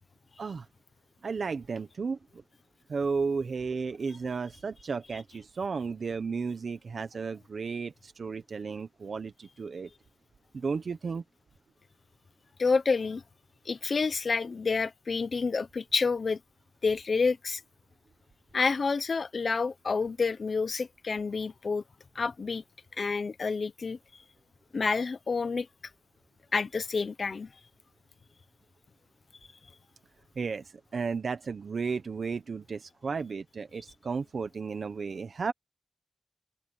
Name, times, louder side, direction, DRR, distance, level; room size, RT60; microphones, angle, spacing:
voice 1, 1.2-2.4 2.9-9.9 10.5-11.2 30.4-35.5, right 5 dB, 75° right, 1.1 m, -34 dB
voice 2, 12.6-13.2 13.7-16.4 16.8-17.6 18.5-21.8 22.1-22.6 23.0-24.0 24.7-25.7 26.5-27.5, left 4 dB, 65° left, 0.9 m, -28 dB
open air
wide cardioid pair, 70°, 0 cm